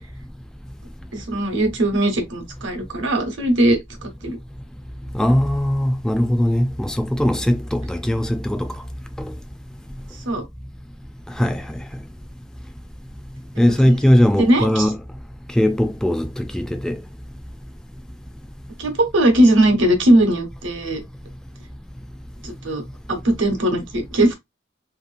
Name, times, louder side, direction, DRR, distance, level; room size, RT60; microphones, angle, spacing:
voice 1, 1.1-4.4 10.3-10.4 13.8-14.0 14.4-14.9 18.8-21.0 22.4-22.8 23.1-24.3, right 1 dB, 75° right, 1.0 m, -19 dB
voice 2, 5.1-8.7 11.4-11.6 13.6-15.0 15.5-17.0, equal, 5° left, 0.3 m, -19 dB
2.8 x 2.7 x 2.5 m
head